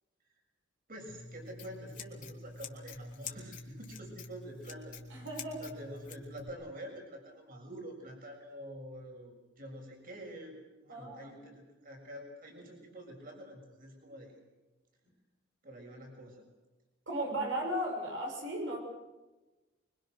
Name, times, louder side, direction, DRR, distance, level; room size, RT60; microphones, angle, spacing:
voice 1, 0.9-5.0 5.6-10.5 10.8-14.3 15.6-16.5, equal, 50° right, 1 dB, 6.8 m, -47 dB
Scissors, 1.1-6.5, left 4 dB, 45° left, 2.9 m, -47 dB
voice 2, 5.1-5.6 10.9-11.3 17.1-18.8, right 1 dB, 80° right, 1 dB, 6.3 m, -35 dB
26.0 x 24.0 x 6.6 m, 1.1 s
head